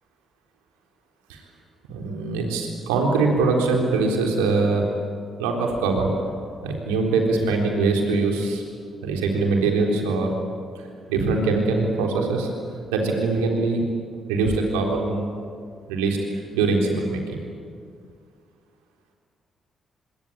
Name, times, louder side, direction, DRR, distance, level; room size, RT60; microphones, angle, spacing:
voice 1, 1.9-4.8 5.4-6.1 6.6-8.6 9.0-10.3 11.1-12.5 12.9-13.8 14.3-15.3 15.9-16.2 16.5-17.4, right 3 dB, 90° right, 1 dB, 3.8 m, -22 dB
25.5 x 23.5 x 8.7 m, 2.2 s
hypercardioid pair, 50°, 0 cm